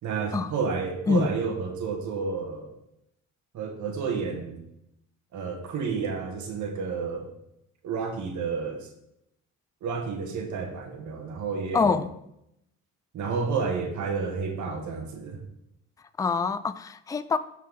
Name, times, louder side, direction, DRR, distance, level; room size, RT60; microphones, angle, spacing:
voice 1, 0.0-2.7 3.5-4.6 5.3-7.3 7.8-8.9 9.8-12.0 13.1-15.4, right 5 dB, 75° right, 1.7 m, -30 dB
voice 2, 11.7-12.1 16.2-17.4, left 5 dB, 10° left, 0.4 m, -25 dB
13.5 x 4.7 x 3.7 m
cardioid pair, 90°, 30 cm